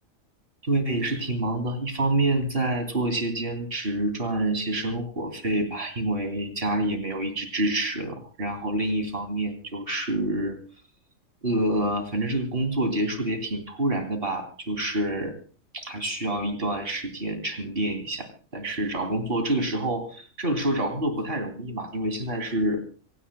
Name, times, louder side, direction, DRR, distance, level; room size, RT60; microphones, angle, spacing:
voice 1, 0.6-10.6 11.4-15.3 15.7-22.8, right 1 dB, 40° right, 6 dB, 3.1 m, -27 dB
25.5 x 17.5 x 2.2 m, 0.39 s
omnidirectional pair, 1.4 m